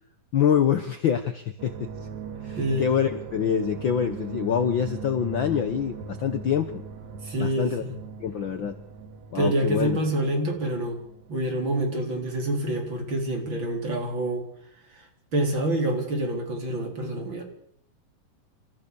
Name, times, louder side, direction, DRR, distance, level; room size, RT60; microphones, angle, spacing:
voice 1, 0.3-1.9 2.4-6.7 7.4-7.9 8.2-8.8 9.3-10.0, left 8 dB, 80° left, 10 dB, 1.1 m, -25 dB
sound 1, 1.6-13.7 14.0-14.4, right 5 dB, 60° right, 3.5 m, -40 dB
voice 2, 2.6-2.9 7.2-7.9 9.3-11.0 11.3-14.4 15.3-17.4, right 1 dB, 35° right, 2 dB, 4.6 m, -27 dB
28.0 x 14.5 x 6.9 m, 0.69 s
omnidirectional pair, 3.7 m